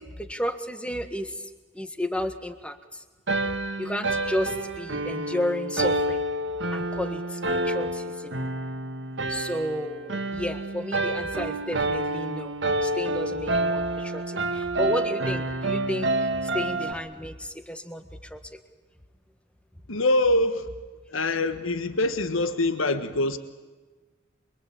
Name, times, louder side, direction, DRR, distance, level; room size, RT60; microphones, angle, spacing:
voice 1, 0.0-1.4 1.7-3.0 3.8-6.2 6.7-8.3 9.3-12.6 12.8-16.3 16.5-18.4, equal, 5° left, 8 dB, 1.6 m, -32 dB
sound 1, 3.3-16.9, right 2 dB, 60° right, 1.7 m, -28 dB
voice 2, 19.9-20.7 21.1-23.4, left 2 dB, 85° left, 10 dB, 1.4 m, -24 dB
27.0 x 23.0 x 8.7 m, 1.3 s
head